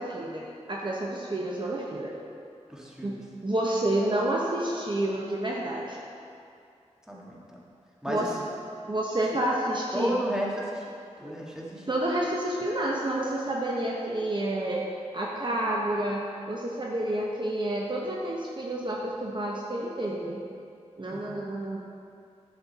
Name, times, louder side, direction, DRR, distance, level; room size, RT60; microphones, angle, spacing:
voice 1, 0.0-2.2 3.0-3.2 3.4-6.0 8.1-8.3 8.9-10.2 11.9-14.9 15.1-20.4 21.0-21.8, right 1 dB, 40° right, -3 dB, 1.0 m, -29 dB
voice 2, 2.7-3.3 7.1-7.6 8.0-8.4 9.9-10.9 11.2-11.9 21.1-21.5, equal, 5° right, -4 dB, 1.8 m, -33 dB
11.0 x 6.4 x 4.2 m, 2.5 s
wide cardioid pair, 65°, 12 cm